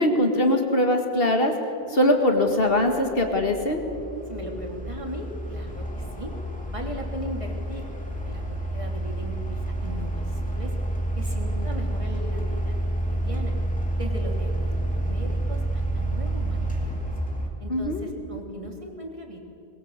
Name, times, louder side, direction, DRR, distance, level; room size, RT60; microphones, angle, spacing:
voice 1, 0.0-1.5 1.9-3.8 17.7-18.0, left 1 dB, 65° left, 4 dB, 2.1 m, -21 dB
sound 1, 1.7-1.8 2.4-17.5, right 1 dB, 5° left, 3.1 m, -29 dB
voice 2, 4.3-6.3 6.7-10.7 11.2-12.8 13.1-13.6 14.0-17.1 17.6-19.4, equal, 30° right, 1 dB, 3.2 m, -38 dB
22.0 x 21.5 x 8.1 m, 2.7 s
omnidirectional pair, 1.0 m